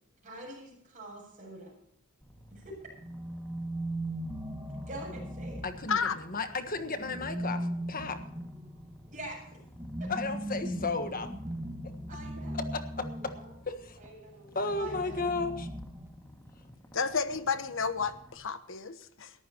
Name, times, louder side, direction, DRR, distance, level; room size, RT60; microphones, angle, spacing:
voice 1, 0.2-1.7 2.5-2.8 4.9-5.6 9.1-9.4 12.1-12.6 13.0-13.6 14.0-15.3, right 1 dB, 35° right, -1 dB, 7.9 m, -45 dB
Purr, 2.2-18.4, equal, 15° left, 2.1 m, -55 dB
sound 1, 3.0-6.3 7.0-13.6 14.6-16.5, right 1 dB, 15° right, 1.6 m, -38 dB
voice 2, 5.6-8.2 10.1-11.3 12.5-13.3 13.7-14.0 14.5-15.7, left 3 dB, 40° left, 9 dB, 1.5 m, -34 dB
voice 3, 16.9-19.3, left 5 dB, 60° left, 11 dB, 1.1 m, -31 dB
22.0 x 14.5 x 3.0 m, 0.72 s
head